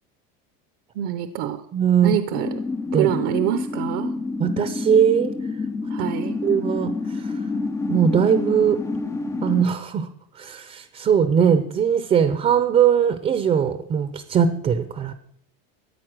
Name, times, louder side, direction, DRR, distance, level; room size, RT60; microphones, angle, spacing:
voice 1, 1.0-1.6 2.0-2.6 2.9-4.1 5.9-6.3, right 12 dB, 50° right, 10 dB, 0.8 m, -25 dB
voice 2, 1.7-2.1 2.9-3.1 4.4-5.3 6.0-6.1 6.4-6.9 7.9-8.8 9.4-10.1 10.4-15.1, right 8 dB, 25° right, 11 dB, 0.7 m, -20 dB
sound 1, 2.3-9.6, left 3 dB, 10° left, 0.5 m, -28 dB
14.0 x 9.5 x 6.1 m, 0.73 s
cardioid pair, 160°, 29 cm